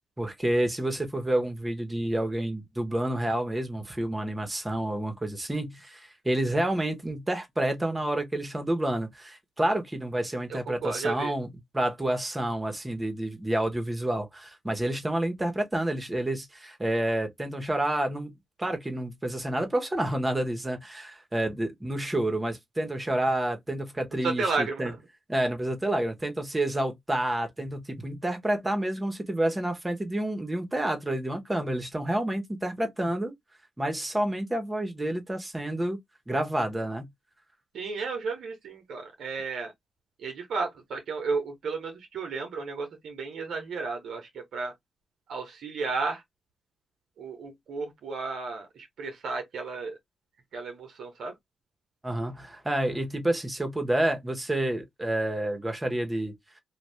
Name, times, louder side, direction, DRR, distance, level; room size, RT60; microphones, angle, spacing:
voice 1, 0.2-11.5 11.7-18.3 18.6-24.9 25.3-33.3 33.8-36.0 36.3-37.0 52.0-56.3, right 1 dB, 20° right, 1.1 m, -29 dB
voice 2, 10.5-11.3 24.2-25.0 37.7-39.7 40.2-44.7 45.3-46.2 47.2-50.0 50.5-51.3, right 4 dB, 75° right, 0.8 m, -33 dB
2.5 x 2.3 x 3.3 m
supercardioid pair, 45°, 0 cm